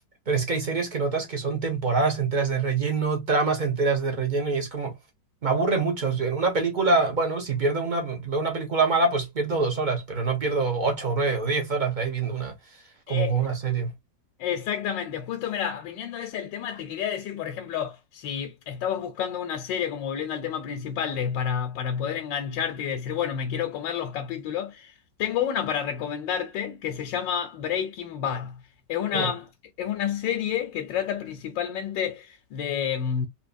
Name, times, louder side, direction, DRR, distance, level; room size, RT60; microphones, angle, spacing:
voice 1, 0.3-4.9 5.4-12.5 13.1-13.9 29.1-29.3, right 4 dB, 45° right, 0.6 m, -25 dB
voice 2, 13.1-13.5 14.4-28.6 28.9-29.5 29.8-33.3, left 8 dB, 85° left, 1.3 m, -30 dB
3.7 x 2.8 x 2.5 m
omnidirectional pair, 1.9 m